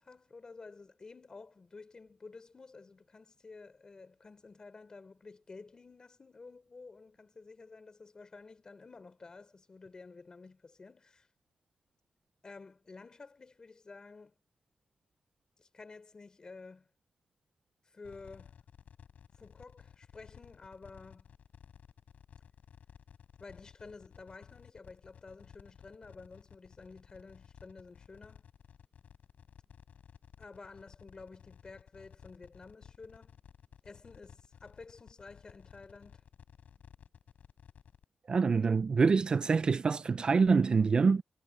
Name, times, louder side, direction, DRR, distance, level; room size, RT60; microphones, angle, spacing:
voice 1, 0.0-11.3 12.4-14.3 15.6-16.9 17.8-18.5 19.4-21.3 23.4-28.4 30.4-33.4 33.8-36.2, left 4 dB, 30° left, 4.5 m, -52 dB
sound 1, 18.0-38.0, left 8 dB, 80° left, 5.8 m, -56 dB
voice 2, 38.3-41.2, right 5 dB, 40° right, 0.4 m, -26 dB
wide cardioid pair, 155°, 2 cm